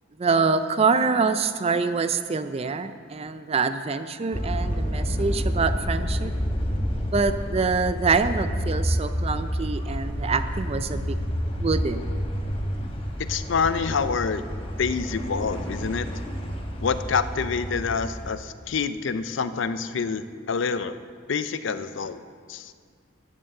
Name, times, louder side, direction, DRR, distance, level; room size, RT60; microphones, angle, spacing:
voice 1, 0.2-6.3 7.1-11.1 11.6-12.1, right 4 dB, 30° right, 11 dB, 0.4 m, -25 dB
sound 1, 4.3-18.3, equal, 30° left, 1.1 m, -29 dB
voice 2, 13.3-14.4 14.8-16.1 16.8-20.9 21.3-22.2 22.5-22.7, left 5 dB, 65° left, 12 dB, 0.5 m, -27 dB
10.5 x 7.4 x 6.6 m, 2.1 s
head